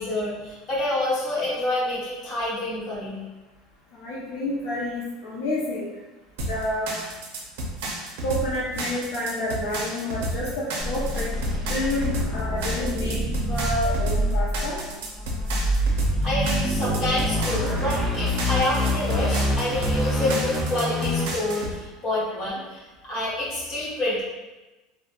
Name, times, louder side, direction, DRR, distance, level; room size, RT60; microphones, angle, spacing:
voice 1, 0.0-3.2 16.2-24.2, left 1 dB, 30° left, -8 dB, 1.0 m, -27 dB
voice 2, 3.9-5.9 6.5-6.9 8.2-11.3 11.6-14.8, left 1 dB, 60° left, -7 dB, 0.5 m, -29 dB
sound 1, 6.4-21.8, right 1 dB, 75° right, 0.5 m, -32 dB
sound 2, 10.8-21.6, equal, ahead, 0.4 m, -26 dB
2.8 x 2.1 x 2.4 m, 1.1 s
cardioid pair, 175°, 0 cm